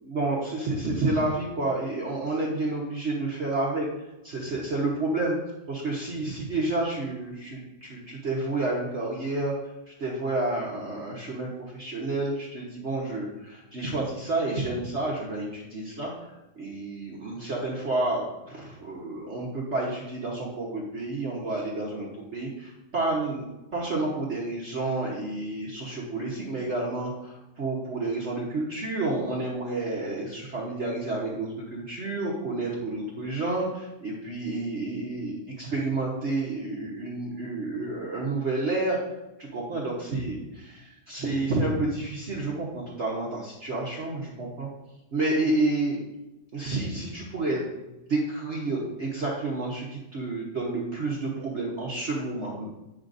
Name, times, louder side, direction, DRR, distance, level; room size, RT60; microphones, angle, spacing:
voice 1, 0.0-3.9 4.2-5.4 5.7-9.5 9.9-16.3 16.6-39.0 39.4-44.7 45.1-46.0 46.5-47.6 48.1-52.6, right 2 dB, 45° right, -4 dB, 1.2 m, -30 dB
9.4 x 6.2 x 2.6 m, 0.98 s
omnidirectional pair, 1.9 m